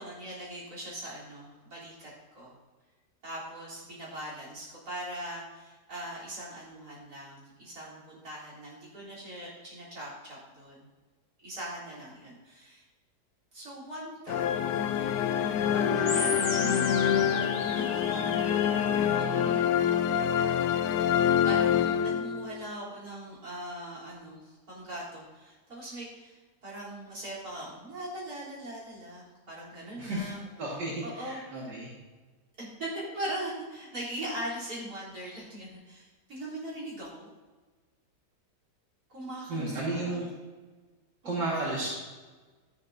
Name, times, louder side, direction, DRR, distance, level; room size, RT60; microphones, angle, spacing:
voice 1, 0.0-2.5 3.2-10.9 11.4-12.8 13.5-15.4 15.7-17.5 17.8-19.9 21.4-31.7 32.6-37.3 39.1-40.3 41.2-41.5, right 1 dB, 60° right, -6 dB, 4.1 m, -41 dB
sound 1, 14.3-22.6, left 9 dB, 80° left, 1.2 m, -26 dB
sound 2, 16.1-19.1, left 1 dB, 30° left, 2.1 m, -36 dB
voice 2, 30.0-30.3 30.6-31.9 39.5-40.3 41.2-41.9, right 2 dB, 85° right, -6 dB, 2.5 m, -33 dB
13.0 x 10.5 x 2.7 m, 1.3 s
omnidirectional pair, 1.8 m